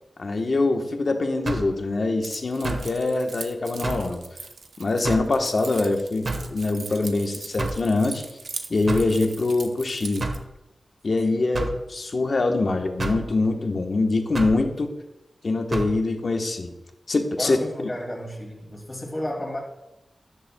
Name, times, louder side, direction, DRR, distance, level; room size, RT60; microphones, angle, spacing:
voice 1, 0.2-4.2 4.8-8.2 8.7-10.3 11.0-14.9 15.4-16.7 17.1-17.6, left 3 dB, 50° left, 4 dB, 1.1 m, -24 dB
sound 1, 1.5-1.8 2.6-2.9 3.8-4.1 5.0-5.3 6.2-6.5 7.6-7.9 8.9-9.2 10.2-10.5 11.5-11.8 13.0-13.3 14.3-14.6 15.7-15.9, right 2 dB, 55° right, 1.2 m, -29 dB
Keys jangling, 2.2-10.4, right 4 dB, 75° right, 0.8 m, -40 dB
voice 2, 17.4-19.6, left 1 dB, 20° left, -2 dB, 2.5 m, -32 dB
14.0 x 11.0 x 2.3 m, 0.94 s
wide cardioid pair, 115°, 0 cm